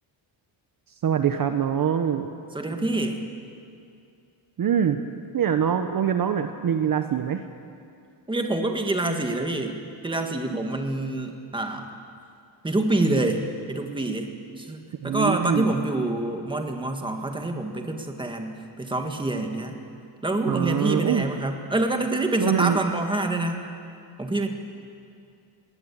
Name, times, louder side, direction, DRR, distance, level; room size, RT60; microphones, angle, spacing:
voice 1, 1.0-2.3 4.6-5.0 5.3-7.4 15.0-15.7 20.5-21.2 22.4-22.8, right 8 dB, 45° right, 8 dB, 0.9 m, -24 dB
voice 2, 2.5-3.2 8.3-11.9 12.6-19.8 20.2-23.6 24.2-24.5, right 2 dB, 10° right, 4 dB, 1.8 m, -26 dB
20.0 x 18.0 x 8.7 m, 2.4 s
cardioid pair, 140°, 48 cm